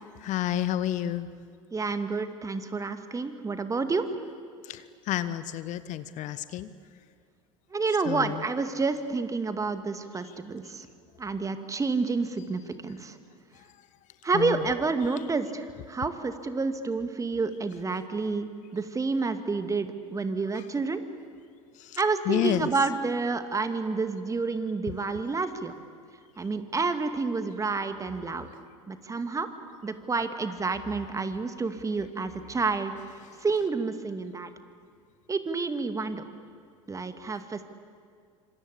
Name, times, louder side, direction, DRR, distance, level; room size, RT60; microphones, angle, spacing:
voice 1, 0.2-1.3 4.6-6.7 8.1-8.4 14.3-14.6 21.8-22.6, left 12 dB, 50° left, 14 dB, 1.1 m, -30 dB
voice 2, 1.7-4.1 7.7-10.9 11.2-13.2 14.2-21.0 22.0-25.7 26.4-28.5 28.9-29.5 29.8-32.9 33.4-34.5 35.3-36.2 36.9-37.6, right 4 dB, 20° right, 9 dB, 2.2 m, -29 dB
26.0 x 26.0 x 8.5 m, 2.2 s
hypercardioid pair, 70°, 16 cm